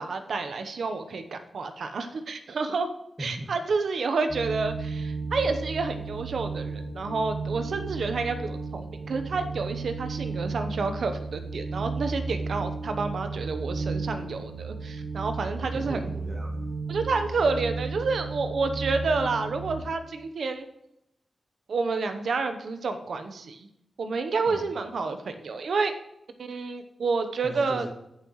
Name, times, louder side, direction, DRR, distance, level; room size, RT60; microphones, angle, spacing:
voice 1, 0.0-2.9 3.2-16.0 16.9-20.7 21.7-23.7 24.0-26.0 26.4-27.9, right 4 dB, 75° right, 8 dB, 0.9 m, -29 dB
voice 2, 3.2-3.5 15.6-16.7 24.4-24.7 27.4-27.9, equal, 25° right, 2 dB, 1.9 m, -39 dB
sound 1, 4.3-19.8, right 4 dB, 60° right, 1.6 m, -34 dB
16.0 x 5.6 x 3.1 m, 0.82 s
cardioid pair, 45°, 0 cm